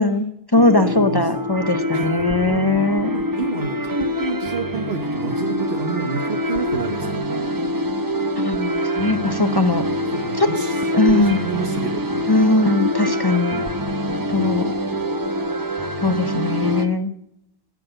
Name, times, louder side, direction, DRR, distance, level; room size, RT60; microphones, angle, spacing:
voice 1, 0.0-3.1 8.4-9.8 10.4-10.5 10.9-11.4 12.3-13.6 14.3-14.7 16.0-17.1, left 2 dB, 30° left, 9 dB, 0.6 m, -20 dB
sound 1, 0.5-16.9, equal, 20° right, 0.8 m, -24 dB
voice 2, 0.8-1.3 1.6-2.1 3.1-7.3 10.0-12.1, right 5 dB, 75° right, 5 dB, 1.2 m, -30 dB
18.5 x 6.3 x 7.8 m, 0.78 s
omnidirectional pair, 1.0 m